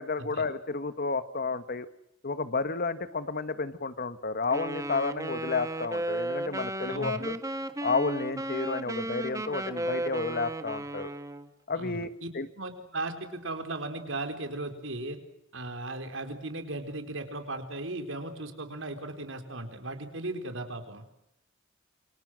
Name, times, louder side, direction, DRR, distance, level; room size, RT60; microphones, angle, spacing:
voice 1, 0.0-1.9 2.2-7.4 7.8-11.1 11.7-12.5, left 4 dB, 50° left, 13 dB, 1.4 m, -31 dB
Wind instrument woodwind instrument, 4.5-11.5, right 1 dB, 15° right, 1.6 m, -34 dB
voice 2, 6.9-7.2 11.7-12.3 12.5-15.2 15.5-21.0, right 2 dB, 75° right, 7 dB, 4.3 m, -37 dB
28.5 x 26.0 x 6.4 m, 0.82 s
head